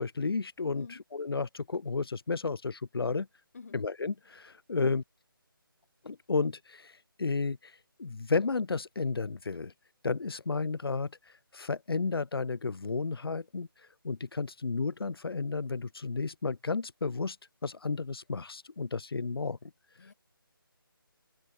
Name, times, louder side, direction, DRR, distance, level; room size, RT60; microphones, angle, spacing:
voice 1, 0.0-3.3 3.7-5.0 6.0-9.7 10.0-17.4 17.6-19.6 19.9-20.1, left 4 dB, 85° left, 0.7 m, -32 dB
voice 2, 0.7-1.0 3.5-3.8 4.8-5.0 20.0-20.1, left 4 dB, 40° left, 5.7 m, -46 dB
figure-of-eight pair, 175°, 12 cm